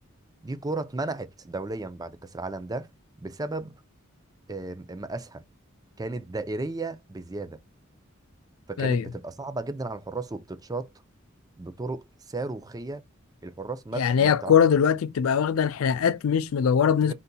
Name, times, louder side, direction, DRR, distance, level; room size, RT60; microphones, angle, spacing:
voice 1, 0.4-2.9 3.2-3.7 4.5-5.4 6.0-7.6 8.7-10.9 11.6-13.0 13.4-14.6 17.0-17.1, right 2 dB, 20° right, 0.5 m, -34 dB
voice 2, 14.0-17.1, left 7 dB, 90° left, 0.4 m, -22 dB
4.1 x 3.8 x 2.2 m
head